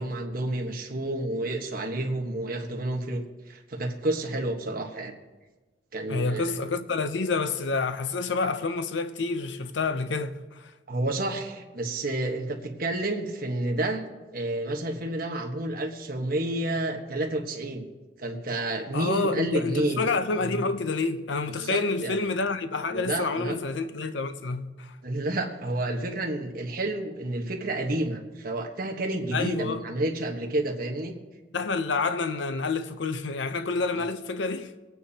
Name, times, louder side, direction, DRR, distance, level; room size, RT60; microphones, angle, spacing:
voice 1, 0.0-5.1 5.9-6.5 10.9-14.0 14.3-17.9 18.2-20.1 20.4-20.7 21.6-22.2 22.9-23.6 25.0-31.1, right 1 dB, 50° right, 1.2 m, -30 dB
voice 2, 6.1-10.7 18.9-24.9 29.3-29.8 31.5-34.7, left 3 dB, 70° left, 0.7 m, -28 dB
23.5 x 9.2 x 2.8 m
head